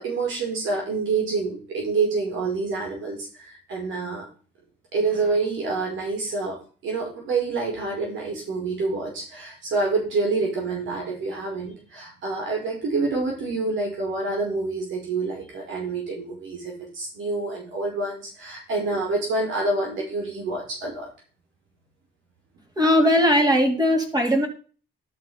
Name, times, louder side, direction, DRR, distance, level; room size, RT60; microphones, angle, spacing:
voice 1, 0.0-4.2 4.9-6.6 6.8-21.1, right 3 dB, 75° right, -1 dB, 5.2 m, -27 dB
voice 2, 22.8-24.5, equal, 20° right, 3 dB, 2.9 m, -19 dB
12.0 x 6.1 x 5.8 m, 0.38 s
cardioid pair, 90°, 20 cm